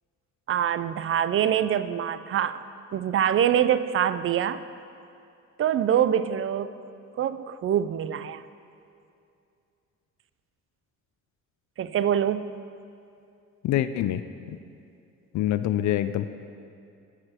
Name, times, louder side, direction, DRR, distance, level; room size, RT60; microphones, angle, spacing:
voice 1, 0.5-2.6 2.9-4.6 5.6-6.7 7.2-8.4 11.8-12.5, right 9 dB, 45° right, 13 dB, 0.4 m, -24 dB
voice 2, 13.6-14.6 15.3-16.3, left 12 dB, 70° left, 12 dB, 0.5 m, -26 dB
15.0 x 4.9 x 4.4 m, 2.5 s
cardioid pair, 90°, 30 cm